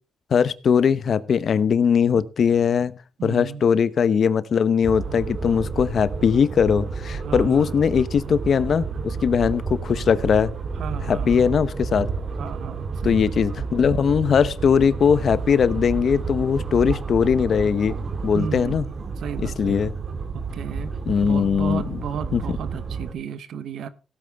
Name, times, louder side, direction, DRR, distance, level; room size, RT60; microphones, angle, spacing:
voice 1, 0.3-2.9 3.2-10.5 11.1-12.1 13.0-18.0 18.2-18.8 19.6-19.9 21.1-22.0 22.3-22.4, left 7 dB, 65° left, 0.8 m, -20 dB
voice 2, 3.2-3.6 7.2-7.7 10.7-11.5 12.4-13.3 18.3-19.9 20.3-20.9 21.2-23.9, right 7 dB, 80° right, 1.0 m, -34 dB
sound 1, 4.8-23.1, right 4 dB, 55° right, 2.2 m, -30 dB
16.5 x 8.5 x 3.5 m
supercardioid pair, 60°, 0 cm